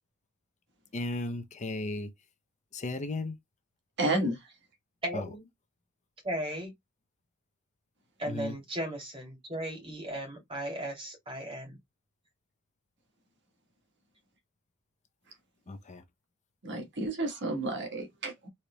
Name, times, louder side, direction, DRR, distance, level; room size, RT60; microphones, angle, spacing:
voice 1, 0.9-2.1 2.7-3.3 5.1-5.3 8.3-8.6 15.7-16.0, left 2 dB, 35° left, 0.6 m, -35 dB
voice 2, 4.0-4.4 16.6-18.5, right 2 dB, 55° right, 1.5 m, -31 dB
voice 3, 5.0-5.4 6.2-6.7 8.2-11.8, right 1 dB, 25° right, 2.7 m, -36 dB
5.0 x 4.3 x 2.2 m
head